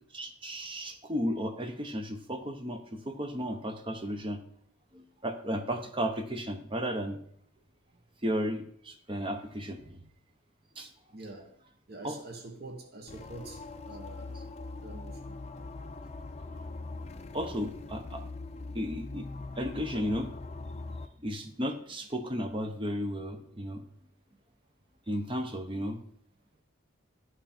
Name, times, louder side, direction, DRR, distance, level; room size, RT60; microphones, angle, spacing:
voice 1, 0.1-4.4 4.9-7.2 8.2-10.0 10.8-10.9 12.0-12.2 17.3-18.2 18.7-19.2 19.6-20.3 21.2-23.8 25.1-26.0, equal, 25° right, 0.9 m, -34 dB
voice 2, 11.1-11.6 11.9-14.4 14.8-15.4, right 2 dB, 50° right, 1.0 m, -46 dB
sound 1, 13.1-21.1, left 3 dB, 30° left, 0.4 m, -42 dB
11.5 x 5.8 x 4.3 m
head